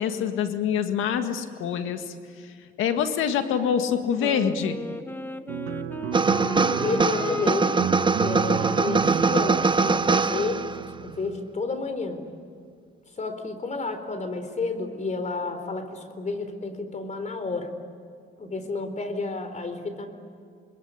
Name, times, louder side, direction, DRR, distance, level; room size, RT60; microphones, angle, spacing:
voice 1, 0.0-2.0 2.8-4.8, left 8 dB, 90° left, 7 dB, 1.9 m, -25 dB
Wind instrument woodwind instrument, 4.2-10.8, left 2 dB, 10° left, 1.1 m, -37 dB
sound 1, 5.5-11.4, right 9 dB, 85° right, 1.9 m, -33 dB
sound 2, 6.1-10.9, right 4 dB, 25° right, 0.8 m, -23 dB
voice 2, 6.6-7.8 8.2-10.7 11.0-12.2 13.2-17.7 18.4-20.1, left 3 dB, 35° left, 8 dB, 4.0 m, -31 dB
27.5 x 21.0 x 9.8 m, 2.2 s
cardioid pair, 90°, 20 cm